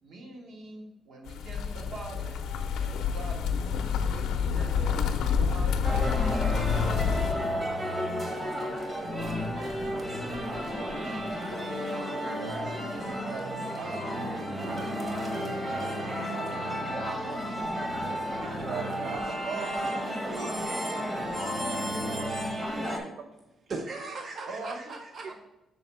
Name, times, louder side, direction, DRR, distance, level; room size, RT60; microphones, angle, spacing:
voice 1, 0.0-5.7 6.0-6.8 7.0-9.9 10.5-13.4 13.7-18.2 18.4-18.9 19.3-19.4 24.5-25.0 25.3-25.4, right 2 dB, 55° right, 1 dB, 1.5 m, -45 dB
sound 1, 1.3-7.3, left 6 dB, 75° left, 0.6 m, -28 dB
sound 2, 5.8-23.0, equal, 20° right, 1.1 m, -32 dB
voice 2, 18.4-20.7 22.7-23.3, right 7 dB, 80° right, 7 dB, 0.4 m, -41 dB
voice 3, 23.7-25.3, right 3 dB, 35° right, 3 dB, 0.6 m, -38 dB
6.2 x 4.0 x 5.5 m, 0.95 s
cardioid pair, 165°, 0 cm